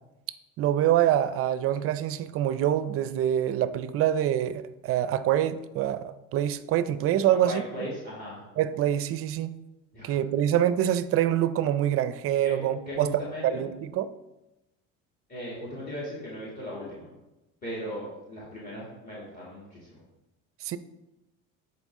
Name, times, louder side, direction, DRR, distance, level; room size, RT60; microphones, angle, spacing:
voice 1, 0.6-7.6 8.6-9.5 10.0-13.1 13.5-14.1 20.6-20.8, right 11 dB, 45° right, 0.5 m, -25 dB
voice 2, 7.4-8.4 9.9-10.1 12.4-13.6 15.3-17.1 17.6-20.0, equal, 25° left, 2.4 m, -37 dB
12.5 x 4.4 x 3.6 m
cardioid pair, 135°, 33 cm